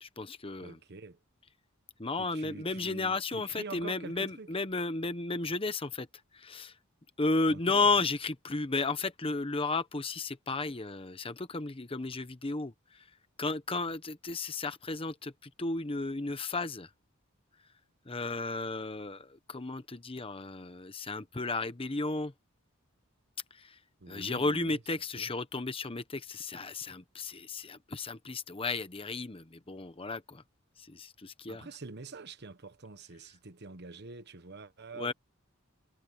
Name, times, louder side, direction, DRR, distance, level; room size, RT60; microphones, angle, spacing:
voice 1, 0.0-0.8 2.0-6.1 6.3-6.7 7.2-13.0 13.4-16.9 18.1-22.3 23.5-23.8 24.1-30.4 30.8-31.7 35.0-35.1, left 3 dB, 25° left, 1.0 m, -33 dB
voice 2, 0.6-1.2 2.2-4.5 7.5-8.0 24.0-24.8 25.1-25.3 31.5-35.1, right 3 dB, 55° right, 1.2 m, -46 dB
head